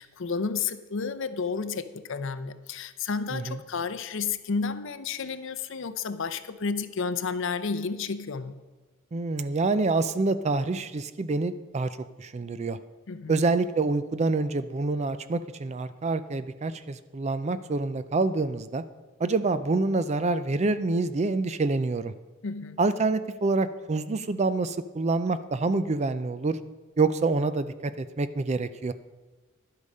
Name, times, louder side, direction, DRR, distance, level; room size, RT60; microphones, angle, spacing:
voice 1, 0.0-8.5 13.1-13.4 22.4-22.8, left 5 dB, 60° left, 12 dB, 0.6 m, -31 dB
voice 2, 9.1-11.9 12.2-12.8 13.3-18.8 19.2-22.1 22.8-26.6 27.0-28.9, right 3 dB, 30° right, 13 dB, 0.4 m, -27 dB
11.0 x 8.3 x 5.4 m, 1.3 s
head